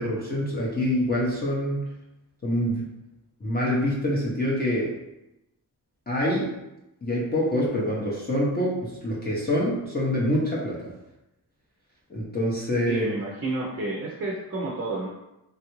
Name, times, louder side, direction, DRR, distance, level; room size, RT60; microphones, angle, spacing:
voice 1, 0.0-1.9 2.4-2.9 3.4-4.9 6.1-6.5 7.0-10.9 12.1-13.1, equal, 25° left, -5 dB, 0.7 m, -26 dB
voice 2, 12.9-15.1, right 2 dB, 40° right, -2 dB, 0.5 m, -30 dB
3.2 x 2.4 x 3.0 m, 0.92 s
wide cardioid pair, 135°, 39 cm